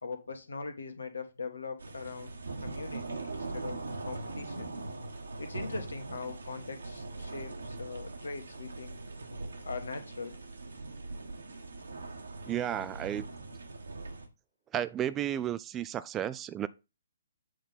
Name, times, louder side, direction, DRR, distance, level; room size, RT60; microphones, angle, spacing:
voice 1, 0.0-2.3 2.6-4.7 5.4-9.0 9.6-10.3, left 4 dB, 70° left, 1.6 m, -41 dB
sound 1, 1.8-14.3, right 3 dB, 70° right, 1.5 m, -41 dB
voice 2, 12.5-13.3 14.7-16.7, right 10 dB, 15° right, 0.3 m, -33 dB
7.8 x 3.7 x 5.7 m
figure-of-eight pair, 130°, 0 cm